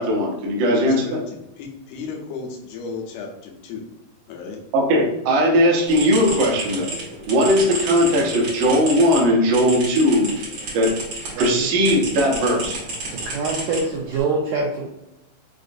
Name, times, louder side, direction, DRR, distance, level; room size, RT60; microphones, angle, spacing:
voice 1, 0.0-1.2 4.7-6.9 7.3-10.3 10.7-10.9 11.4-12.8, equal, 70° right, -1 dB, 2.2 m, -18 dB
voice 2, 0.7-3.9 4.3-4.6, left 4 dB, 80° left, 1 dB, 2.5 m, -34 dB
sound 1, 5.9-11.5 11.8-14.2, right 2 dB, 55° right, 1.4 m, -31 dB
voice 3, 13.1-14.9, right 3 dB, 90° right, -2 dB, 1.8 m, -25 dB
6.2 x 2.5 x 2.5 m, 0.88 s
omnidirectional pair, 4.4 m